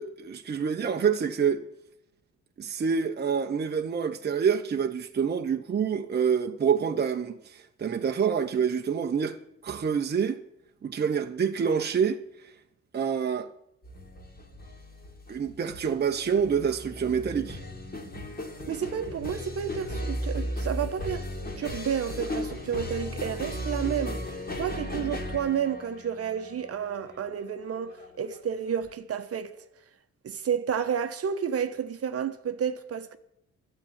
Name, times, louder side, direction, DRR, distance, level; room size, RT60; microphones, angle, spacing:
voice 1, 0.0-1.6 2.6-9.4 9.6-10.4 10.8-12.2 12.9-13.5 15.3-17.6, right 7 dB, 35° right, 0.9 m, -27 dB
sound 1, 13.8-28.9, left 1 dB, 30° left, 2.6 m, -36 dB
voice 2, 18.7-21.3 21.6-24.2 24.6-29.5 30.2-33.2, right 8 dB, 50° right, 1.1 m, -31 dB
11.5 x 7.8 x 10.0 m
cardioid pair, 90°, 30 cm